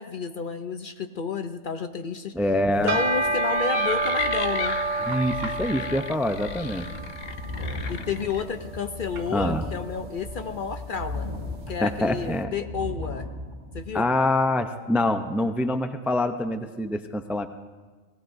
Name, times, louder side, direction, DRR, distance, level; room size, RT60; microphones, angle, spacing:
voice 1, 0.0-2.3 2.8-4.8 7.6-11.3 11.7-13.3 13.7-14.1, left 6 dB, 55° left, 8 dB, 0.6 m, -31 dB
voice 2, 2.3-3.0 5.0-6.9 9.3-9.6 11.8-12.5 13.9-17.5, left 1 dB, 5° right, 7 dB, 0.3 m, -25 dB
sound 1, 2.7-12.1, right 3 dB, 85° right, 1.5 m, -30 dB
sound 2, 3.3-8.4, left 6 dB, 85° left, 1.2 m, -34 dB
sound 3, 6.7-13.8, left 1 dB, 45° right, 5.7 m, -36 dB
30.0 x 18.0 x 2.6 m, 1.4 s
omnidirectional pair, 1.3 m